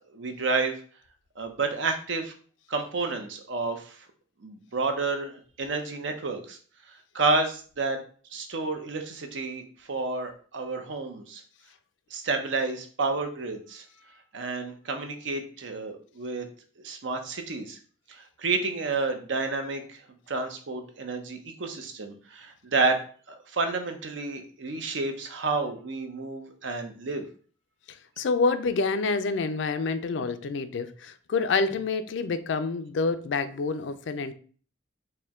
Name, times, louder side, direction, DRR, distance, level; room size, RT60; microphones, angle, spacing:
voice 1, 0.1-0.7 1.4-2.3 2.7-4.0 4.4-6.6 7.1-8.0 8.3-11.4 12.1-13.8 14.3-16.4 16.8-17.8 18.1-20.0 20.3-23.0 23.3-27.3, right 3 dB, 80° right, 5 dB, 0.7 m, -30 dB
voice 2, 27.9-34.3, left 4 dB, 70° left, 11 dB, 0.4 m, -27 dB
4.3 x 2.2 x 3.6 m, 0.43 s
head